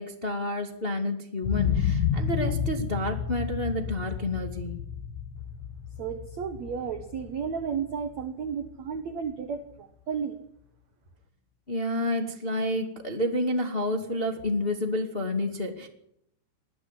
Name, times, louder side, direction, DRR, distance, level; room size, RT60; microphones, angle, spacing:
voice 1, 0.0-4.7 11.7-15.9, left 1 dB, 25° left, 3 dB, 1.3 m, -29 dB
sound 1, 1.4-9.3 9.7-9.8, left 8 dB, 75° left, 3.5 m, -31 dB
voice 2, 6.0-10.4, right 7 dB, 85° right, 8 dB, 1.5 m, -33 dB
20.5 x 13.5 x 9.9 m, 0.73 s
omnidirectional pair, 5.5 m